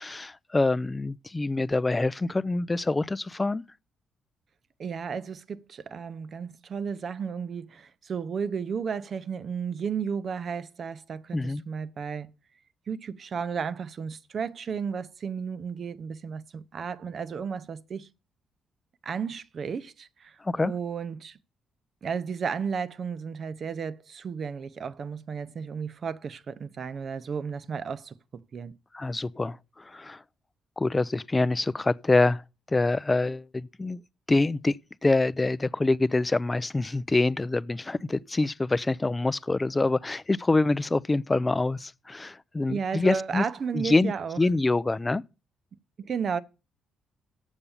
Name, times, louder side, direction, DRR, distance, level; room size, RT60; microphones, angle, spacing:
voice 1, 0.0-3.6 11.3-11.6 20.4-20.7 28.9-30.2 30.8-32.4 32.7-34.0 34.3-34.8 35.0-43.4 43.7-45.2, left 2 dB, 20° left, 0.4 m, -25 dB
voice 2, 4.8-12.3 12.9-18.1 19.0-21.4 22.0-28.7 42.7-44.4 46.0-46.4, right 6 dB, 50° right, 0.6 m, -33 dB
7.2 x 6.7 x 7.0 m
cardioid pair, 90°, 0 cm